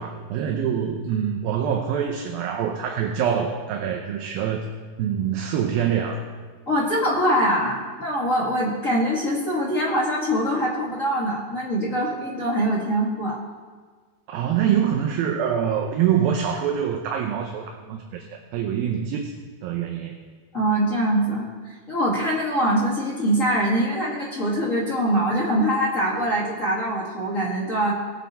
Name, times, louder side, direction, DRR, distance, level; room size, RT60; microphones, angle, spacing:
voice 1, 0.0-4.6 5.0-6.3 14.3-19.3 19.6-20.2, right 8 dB, 75° right, 3 dB, 2.4 m, -25 dB
voice 2, 6.7-13.4 20.5-27.9, equal, 55° left, -6 dB, 0.8 m, -23 dB
19.5 x 7.5 x 4.2 m, 1.5 s
omnidirectional pair, 4.6 m